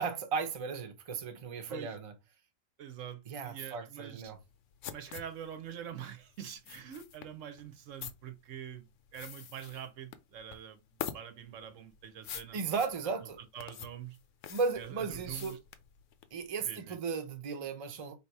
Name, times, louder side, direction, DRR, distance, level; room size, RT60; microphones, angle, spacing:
voice 1, 0.0-2.1 3.3-4.4 12.5-13.4 14.5-15.6 16.3-18.1, right 5 dB, 35° right, 0.6 m, -35 dB
voice 2, 2.8-4.3 4.9-12.6 13.5-14.2 14.8-15.6 16.6-17.0, right 9 dB, 70° right, 1.0 m, -45 dB
sound 1, 4.2-16.4, left 9 dB, 70° left, 0.9 m, -46 dB
3.5 x 2.8 x 4.5 m
omnidirectional pair, 1.4 m